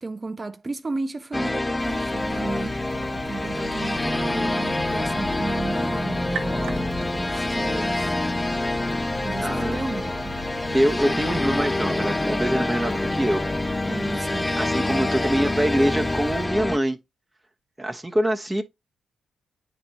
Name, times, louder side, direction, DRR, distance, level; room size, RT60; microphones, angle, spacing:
voice 1, 0.0-2.8 3.1-8.2 9.2-10.4 14.1-14.6, right 3 dB, 35° right, 0.6 m, -33 dB
sound 1, 1.3-16.8, left 2 dB, 20° left, 0.4 m, -26 dB
sound 2, 1.8-16.5, right 2 dB, 75° right, 0.8 m, -40 dB
voice 2, 9.4-9.8 10.7-13.4 13.8-14.2 14.6-17.0 17.8-18.6, right 1 dB, 15° right, 1.0 m, -24 dB
9.0 x 4.3 x 2.9 m
hypercardioid pair, 40°, 0 cm